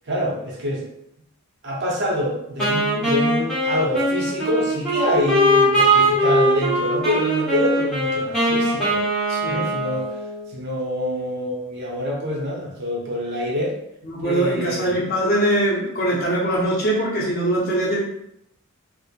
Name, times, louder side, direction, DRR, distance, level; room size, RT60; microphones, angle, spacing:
voice 1, 0.1-0.9 1.6-9.0 9.5-10.1 10.5-13.8 14.2-14.9, left 1 dB, 55° right, -3 dB, 0.6 m, -26 dB
Wind instrument woodwind instrument, 2.6-10.5, right 1 dB, 5° left, 0.9 m, -21 dB
voice 2, 9.3-9.6 14.1-18.0, right 1 dB, 45° left, -4 dB, 0.7 m, -22 dB
3.0 x 2.0 x 2.4 m, 0.78 s
head